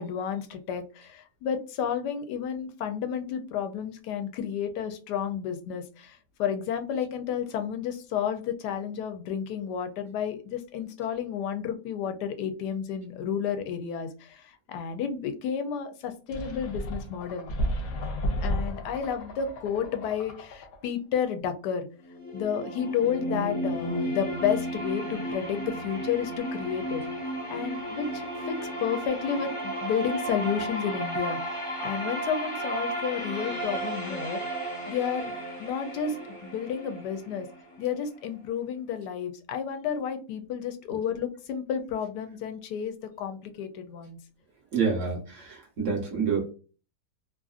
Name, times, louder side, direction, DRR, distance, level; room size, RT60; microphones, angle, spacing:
voice 1, 0.0-17.5 18.4-21.9 22.3-27.0 27.5-34.4 34.9-37.5 37.8-44.2, left 8 dB, 90° left, 7 dB, 1.2 m, -31 dB
sound 1, 16.3-20.9, equal, 65° left, 0.8 m, -33 dB
sound 2, 22.0-38.0, right 1 dB, 30° left, 0.6 m, -33 dB
voice 2, 44.7-46.5, right 5 dB, 55° right, 0 dB, 1.1 m, -28 dB
3.0 x 2.4 x 2.4 m, 0.36 s
omnidirectional pair, 1.7 m